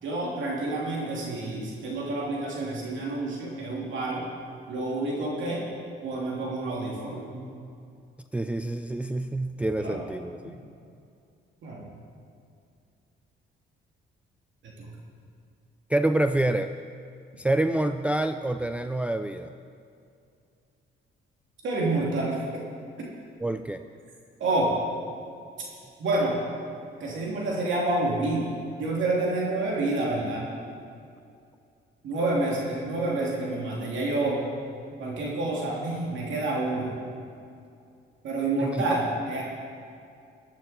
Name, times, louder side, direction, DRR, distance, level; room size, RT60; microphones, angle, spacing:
voice 1, 0.0-4.2 4.7-5.7 6.0-7.4 9.8-10.0 11.6-11.8 14.8-14.9 21.6-22.4 24.4-24.7 26.0-26.4 27.0-28.5 28.8-30.5 32.0-34.4 35.0-36.9 38.2-39.4, right 2 dB, 75° right, -4 dB, 2.8 m, -28 dB
voice 2, 8.3-10.6 15.9-16.7 17.4-19.5 23.4-23.8 38.6-38.8, right 1 dB, 5° right, 7 dB, 0.4 m, -27 dB
15.0 x 11.5 x 4.3 m, 2.4 s
cardioid pair, 90°, 20 cm